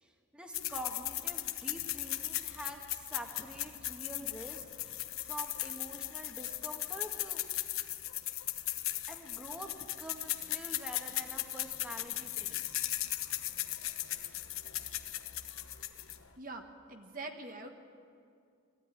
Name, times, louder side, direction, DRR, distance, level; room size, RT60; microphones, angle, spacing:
voice 1, 0.0-7.4 9.1-12.8, right 1 dB, 5° right, 2 dB, 1.5 m, -46 dB
sound 1, 0.5-16.3, left 14 dB, 75° left, 1.2 m, -38 dB
voice 2, 16.4-17.7, right 2 dB, 40° right, 4 dB, 1.5 m, -44 dB
21.5 x 15.5 x 9.9 m, 2.4 s
head